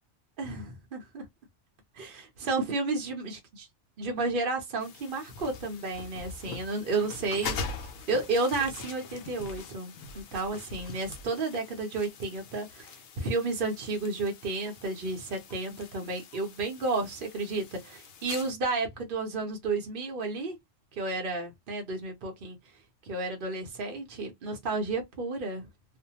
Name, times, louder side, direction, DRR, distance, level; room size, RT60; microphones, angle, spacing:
voice 1, 0.4-1.2 2.0-3.4 4.0-20.6 20.9-22.6 23.0-25.7, right 3 dB, 50° right, 0.7 m, -32 dB
sound 1, 4.8-18.5, left 4 dB, 75° left, 1.0 m, -43 dB
2.6 x 2.1 x 2.8 m
omnidirectional pair, 1.4 m